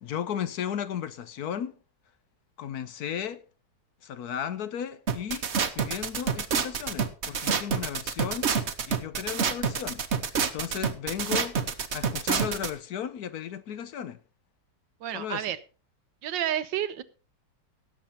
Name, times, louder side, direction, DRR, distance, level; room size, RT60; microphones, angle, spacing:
voice 1, 0.0-1.7 2.6-3.4 4.0-5.4 5.7-8.5 8.9-10.0 10.3-14.2 15.1-15.5, left 9 dB, 65° left, 1.2 m, -35 dB
sound 1, 5.1-12.7, right 6 dB, 45° right, 1.1 m, -27 dB
voice 2, 15.0-15.6 16.2-17.0, right 11 dB, 90° right, 1.6 m, -30 dB
17.5 x 7.4 x 4.3 m
omnidirectional pair, 1.9 m